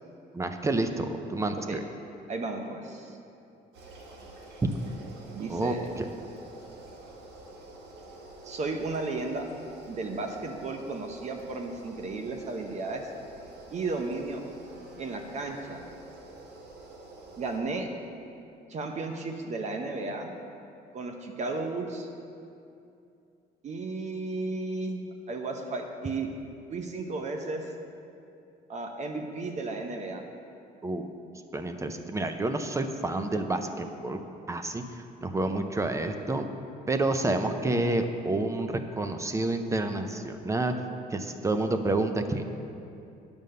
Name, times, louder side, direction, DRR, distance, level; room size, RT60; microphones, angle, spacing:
voice 1, 0.3-1.8 4.6-4.7 5.5-6.1 30.8-31.1 31.5-34.2 34.5-34.8 35.2-36.5 36.9-40.7 41.1-42.4, right 2 dB, 15° right, 7 dB, 0.6 m, -29 dB
voice 2, 2.3-3.2 5.3-5.9 8.4-9.4 9.9-13.1 13.7-14.4 15.0-15.8 17.4-17.9 18.7-20.4 20.9-22.1 23.6-25.0 25.3-26.3 26.7-27.6 28.7-30.2, right 3 dB, 45° right, 3 dB, 0.8 m, -34 dB
sound 1, 3.7-17.6, right 2 dB, 80° right, 1.6 m, -48 dB
9.3 x 5.3 x 6.6 m, 2.6 s
cardioid pair, 110°, 17 cm